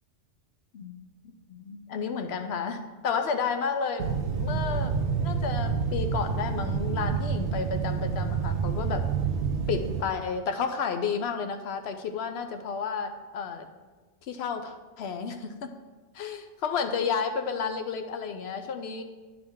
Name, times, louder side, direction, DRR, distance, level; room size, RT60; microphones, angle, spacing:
voice 1, 1.5-9.0 9.7-13.7 14.2-15.7 16.1-19.0, left 6 dB, 65° left, 7 dB, 0.9 m, -31 dB
sound 1, 4.0-10.0, right 6 dB, 85° right, 0.9 m, -28 dB
10.5 x 4.9 x 3.6 m, 1.3 s
omnidirectional pair, 1.2 m